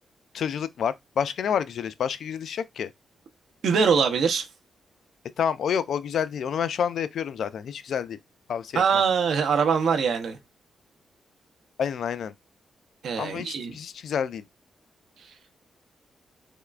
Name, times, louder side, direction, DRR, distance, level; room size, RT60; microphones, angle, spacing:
voice 1, 0.3-2.9 5.4-8.2 8.5-9.0 11.8-12.3 13.2-14.4, left 8 dB, 70° left, 0.3 m, -29 dB
voice 2, 3.6-4.4 8.7-10.4 13.0-13.7, right 6 dB, 75° right, 0.7 m, -23 dB
3.5 x 3.1 x 2.4 m
cardioid pair, 125°, 0 cm